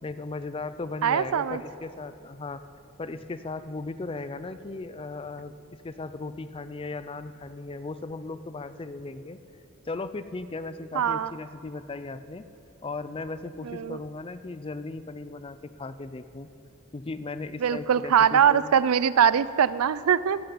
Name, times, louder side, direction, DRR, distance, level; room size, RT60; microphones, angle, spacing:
voice 1, 0.0-2.6 3.0-9.4 9.9-12.5 12.8-16.5 16.9-18.7, left 3 dB, 25° left, 12 dB, 0.4 m, -37 dB
voice 2, 1.0-1.6 10.9-11.3 13.6-14.0 17.6-20.4, right 8 dB, 85° right, 17 dB, 0.4 m, -22 dB
14.5 x 6.6 x 9.5 m, 2.8 s
head